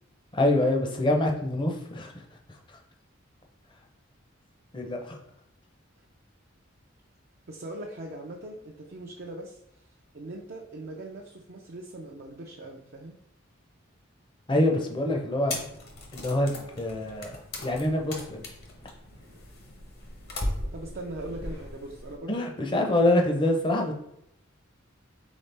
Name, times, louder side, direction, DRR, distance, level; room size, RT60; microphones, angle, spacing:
voice 1, 0.3-2.1 4.7-5.2 14.5-15.6 16.1-17.3 17.6-18.5 22.3-23.9, left 1 dB, 25° left, 2 dB, 0.6 m, -25 dB
voice 2, 7.5-9.6 10.1-13.1 20.7-22.4, right 1 dB, 50° right, 0 dB, 0.5 m, -40 dB
sound 1, 15.5-22.2, left 1 dB, 55° left, 0.9 m, -38 dB
4.1 x 3.6 x 3.3 m, 0.77 s
head